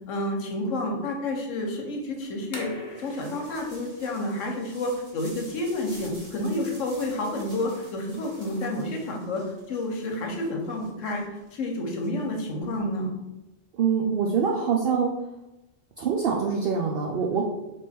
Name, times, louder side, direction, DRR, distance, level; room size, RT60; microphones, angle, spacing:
voice 1, 0.1-13.2, left 1 dB, 80° left, 1 dB, 1.2 m, -30 dB
sound 1, 2.3-8.9, left 1 dB, 40° left, 1.0 m, -46 dB
sound 2, 2.9-12.8, right 1 dB, 30° right, 1.4 m, -50 dB
voice 2, 13.7-15.2 16.0-17.4, right 6 dB, 60° right, 0 dB, 0.6 m, -24 dB
3.4 x 3.3 x 4.2 m, 0.97 s
omnidirectional pair, 1.3 m